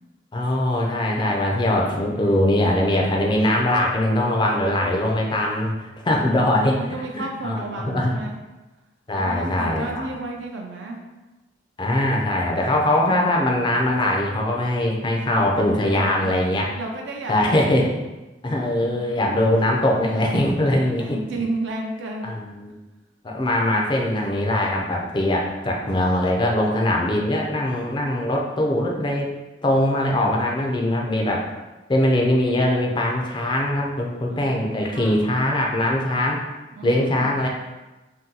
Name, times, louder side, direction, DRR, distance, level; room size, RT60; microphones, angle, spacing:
voice 1, 0.3-6.8 7.1-8.1 9.1-10.1 11.8-16.7 17.3-17.9 18.4-21.2 22.2-22.7 23.2-29.3 29.6-31.5 31.9-36.4 36.8-37.5, left 1 dB, 25° left, -1 dB, 0.4 m, -21 dB
voice 2, 6.6-8.4 9.1-11.0 15.3-17.8 18.7-19.3 21.0-22.3 34.3-35.2 36.8-37.3, right 2 dB, 75° right, 1 dB, 0.4 m, -32 dB
2.7 x 2.2 x 3.7 m, 1.1 s
head